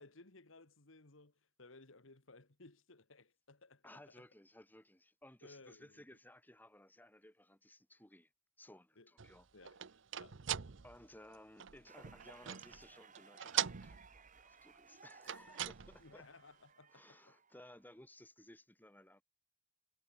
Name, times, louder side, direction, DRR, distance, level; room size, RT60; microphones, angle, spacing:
voice 1, 0.0-4.3 5.4-6.0 9.0-9.1 9.5-9.8 10.2-10.4 16.0-17.4, left 3 dB, 80° left, 2.0 m, -60 dB
voice 2, 3.8-8.3 8.6-9.5 10.8-16.2 16.9-19.2, left 1 dB, 10° left, 6.6 m, -59 dB
sound 1, 9.2-12.9 13.2-14.4 15.1-16.1, right 10 dB, 65° right, 0.8 m, -42 dB
sound 2, 11.9-18.0, right 5 dB, 40° right, 7.0 m, -62 dB
head